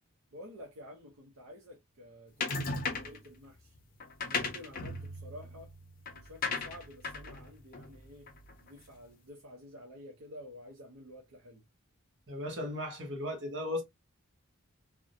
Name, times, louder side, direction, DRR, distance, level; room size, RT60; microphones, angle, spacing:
voice 1, 0.3-3.8 4.2-5.7 6.1-8.3 8.6-11.6, left 1 dB, 75° right, 0.6 m, -50 dB
sound 1, 2.4-3.3 4.0-8.7, left 3 dB, 40° left, 0.5 m, -37 dB
voice 2, 12.3-13.8, left 1 dB, 55° right, 1.0 m, -36 dB
2.5 x 2.1 x 2.6 m
head